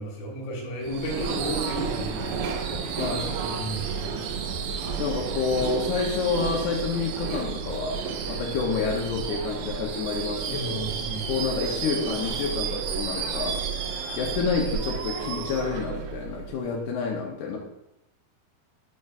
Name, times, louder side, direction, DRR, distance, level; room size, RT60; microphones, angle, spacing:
voice 1, 0.0-2.4 3.4-4.0 10.4-11.3, right 1 dB, 60° left, -1 dB, 1.9 m, -33 dB
Subway metro underground / Screech, 0.8-16.8, right 6 dB, 85° right, 2.6 m, -31 dB
voice 2, 3.0-3.4 5.0-10.9 11.3-13.6 14.2-17.6, left 5 dB, 85° left, -1 dB, 1.8 m, -29 dB
9.0 x 5.8 x 2.4 m, 0.85 s
omnidirectional pair, 4.6 m